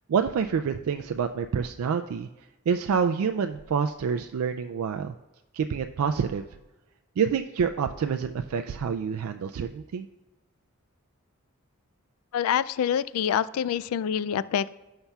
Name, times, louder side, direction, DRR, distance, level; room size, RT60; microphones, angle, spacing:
voice 1, 0.1-2.3 2.7-5.1 5.5-6.4 7.2-10.1, right 6 dB, 90° right, 7 dB, 0.4 m, -27 dB
voice 2, 12.3-14.7, left 9 dB, 80° left, 17 dB, 0.3 m, -26 dB
17.0 x 5.6 x 2.3 m, 1.0 s
head